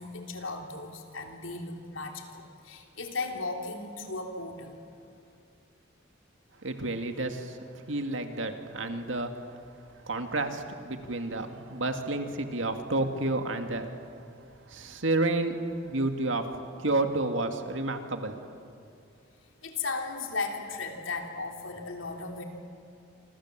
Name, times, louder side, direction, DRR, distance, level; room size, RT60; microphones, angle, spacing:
voice 1, 0.0-4.8 19.6-22.4, left 3 dB, 90° left, 2 dB, 3.4 m, -36 dB
voice 2, 6.6-7.6 7.9-9.3 10.0-13.9 14.7-15.6 15.8-16.4 16.8-18.4, right 2 dB, 75° right, 6 dB, 2.2 m, -30 dB
27.0 x 26.0 x 7.6 m, 2.4 s
head